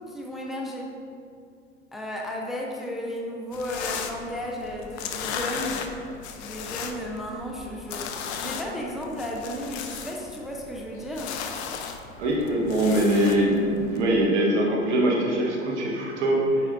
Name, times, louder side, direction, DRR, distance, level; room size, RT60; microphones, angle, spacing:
voice 1, 0.1-1.0 1.9-5.9 6.4-11.4, left 1 dB, ahead, -1 dB, 0.6 m, -34 dB
sound 1, 3.5-14.3, left 6 dB, 65° left, 0.6 m, -36 dB
voice 2, 12.2-16.7, right 1 dB, 70° right, -2 dB, 1.2 m, -23 dB
8.1 x 4.9 x 2.6 m, 2.5 s
hypercardioid pair, 90°, 36 cm